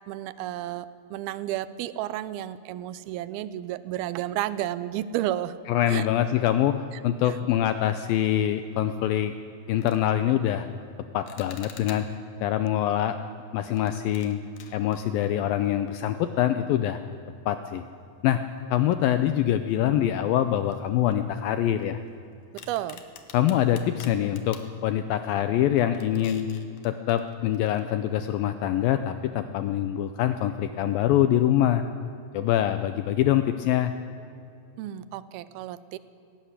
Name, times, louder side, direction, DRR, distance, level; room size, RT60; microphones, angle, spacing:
voice 1, 0.1-5.6 5.9-6.1 6.9-7.0 7.3-7.4 22.5-23.0 34.8-36.0, right 13 dB, 80° right, 16 dB, 2.3 m, -32 dB
voice 2, 5.7-6.7 7.0-9.3 9.7-10.7 11.1-12.1 12.4-13.2 13.5-14.4 14.7-17.0 17.5-17.8 18.2-18.4 18.7-22.0 23.3-26.5 26.8-31.8 32.3-33.9, left 11 dB, 80° left, 10 dB, 2.0 m, -24 dB
sound 1, 9.2-9.3 9.7-10.1 11.3-12.3 13.6-16.0 16.3-16.4 17.1-17.2 19.0-19.7 20.0-20.1 20.7-22.1 22.6-24.7 25.3-25.5 25.8-27.8, left 8 dB, 60° left, 2.5 m, -49 dB
19.5 x 17.5 x 8.2 m, 2.7 s
omnidirectional pair, 4.9 m